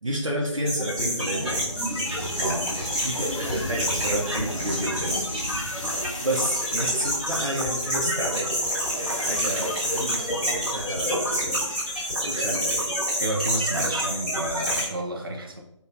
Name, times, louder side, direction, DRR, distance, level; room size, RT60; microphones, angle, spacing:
voice 1, 0.0-1.7 3.0-5.3 5.8-8.7 8.9-12.9, right 1 dB, 75° right, -3 dB, 0.8 m, -31 dB
sound 1, 0.6-14.8, equal, ahead, 1.3 m, -28 dB
sound 2, 1.0-6.7, equal, 20° left, 0.5 m, -37 dB
sound 3, 2.0-12.1, left 3 dB, 80° left, 0.5 m, -41 dB
voice 2, 2.4-2.7 13.2-15.6, right 1 dB, 45° right, 0 dB, 0.6 m, -30 dB
5.1 x 2.4 x 2.6 m, 0.91 s
figure-of-eight pair, 155°, 16 cm